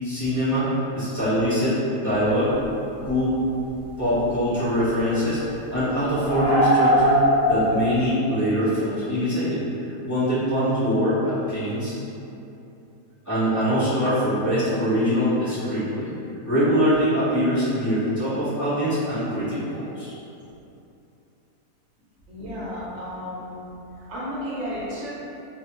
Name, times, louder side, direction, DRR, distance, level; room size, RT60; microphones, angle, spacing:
voice 1, 0.0-2.6 3.0-3.4 4.0-9.6 10.0-12.0 13.2-16.1 16.4-20.1, equal, 15° left, -16 dB, 0.9 m, -23 dB
sound 1, 2.6-2.7 3.1-3.3 4.2-4.4 4.8-8.1, equal, 60° left, 0.5 m, -22 dB
voice 2, 22.3-23.5 24.1-25.1, equal, 60° right, -9 dB, 0.8 m, -32 dB
2.6 x 2.3 x 2.9 m, 2.8 s
omnidirectional pair, 1.7 m